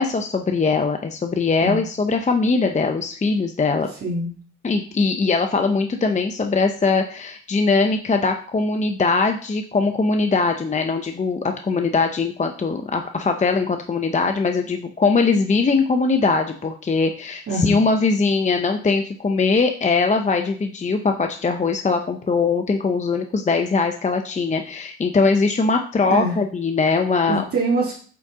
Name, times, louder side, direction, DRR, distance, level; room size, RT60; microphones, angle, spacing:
voice 1, 0.0-3.9 4.6-27.4, left 4 dB, 25° left, 5 dB, 0.6 m, -21 dB
voice 2, 4.0-4.3 17.5-17.8 26.1-26.4 27.3-27.9, right 2 dB, 50° right, -5 dB, 1.9 m, -23 dB
8.4 x 4.1 x 3.7 m, 0.44 s
cardioid pair, 90°, 30 cm